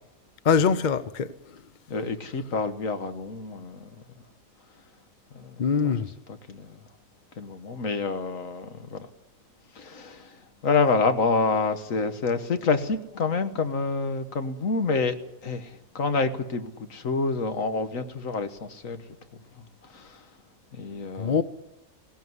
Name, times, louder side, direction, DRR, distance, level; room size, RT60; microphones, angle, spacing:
voice 1, 0.4-1.3 5.6-6.1 21.2-21.4, left 6 dB, 40° left, 0.8 m, -22 dB
voice 2, 1.9-3.9 4.2-4.3 5.3-6.8 7.4-9.1 9.7-15.2 15.4-19.0 19.5-20.3 20.7-21.4, left 4 dB, 70° left, 1.7 m, -28 dB
17.5 x 16.5 x 9.6 m
omnidirectional pair, 1.5 m